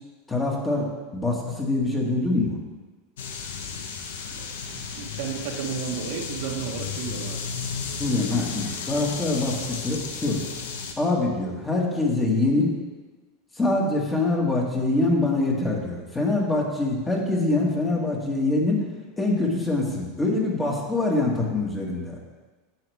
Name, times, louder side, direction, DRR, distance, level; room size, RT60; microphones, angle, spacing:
voice 1, 0.3-2.6 8.0-10.4 11.0-12.7 13.6-18.8 19.2-22.2, left 2 dB, 15° left, -2 dB, 1.8 m, -24 dB
sound 1, 3.2-10.9, left 5 dB, 85° left, 1.0 m, -34 dB
voice 2, 4.3-7.4, right 7 dB, 70° right, 1 dB, 1.5 m, -33 dB
10.5 x 7.8 x 3.6 m, 1.3 s
supercardioid pair, 135°, 0 cm